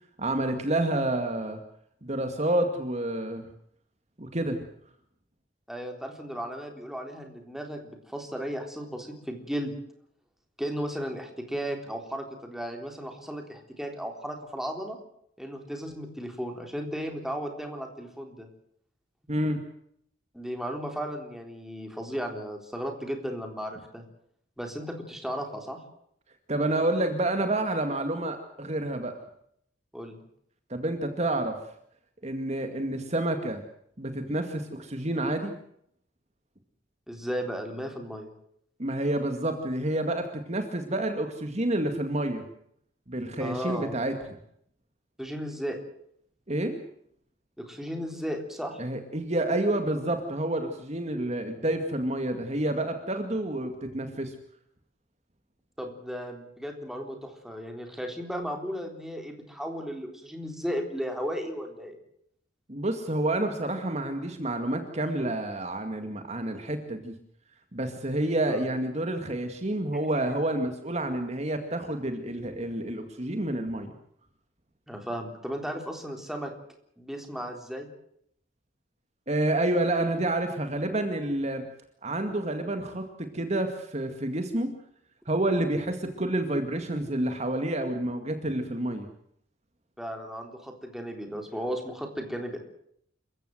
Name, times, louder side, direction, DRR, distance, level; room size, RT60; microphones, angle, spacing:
voice 1, 0.2-1.6 2.0-3.5 4.2-4.6 19.3-19.6 26.5-29.2 30.7-31.6 32.2-33.6 34.0-35.5 38.8-42.5 43.1-44.4 46.5-46.8 48.8-54.4 62.7-67.2 67.7-73.9 79.3-81.7 82.0-84.7 85.3-89.1, right 1 dB, 35° right, 7 dB, 2.1 m, -29 dB
voice 2, 5.7-9.8 10.6-15.0 15.4-18.5 20.3-24.0 24.6-25.8 29.9-30.2 37.1-38.3 43.4-43.9 45.2-45.8 47.7-48.8 55.8-62.0 68.5-68.6 74.9-76.5 77.0-77.9 90.0-92.6, equal, ahead, 4 dB, 3.7 m, -35 dB
28.0 x 15.5 x 7.9 m, 0.70 s
head